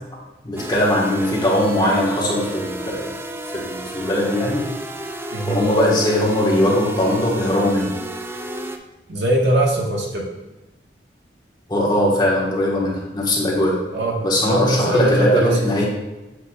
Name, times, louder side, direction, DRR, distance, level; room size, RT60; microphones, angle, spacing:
voice 1, 0.1-3.1 3.6-4.6 5.5-7.9 11.7-13.8 14.2-15.8, left 1 dB, 25° left, -5 dB, 1.5 m, -20 dB
sound 1, 0.6-8.8, right 1 dB, 15° right, 0.3 m, -32 dB
voice 2, 9.1-10.2 13.9-15.6, right 1 dB, 80° right, -1 dB, 1.4 m, -20 dB
8.1 x 4.8 x 2.4 m, 1.0 s
head